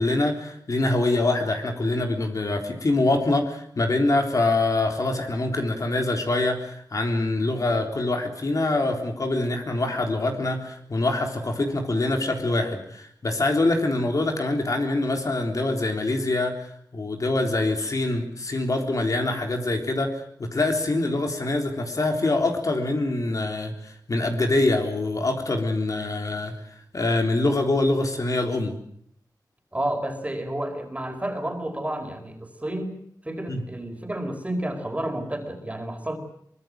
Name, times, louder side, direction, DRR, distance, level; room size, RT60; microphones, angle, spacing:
voice 1, 0.0-26.5 26.9-28.7 33.5-33.6, left 2 dB, 50° left, 3 dB, 3.8 m, -24 dB
voice 2, 29.7-33.0 33.2-36.2, right 1 dB, 20° right, 5 dB, 4.8 m, -30 dB
24.0 x 20.5 x 7.7 m, 0.68 s
wide cardioid pair, 80°, 7 cm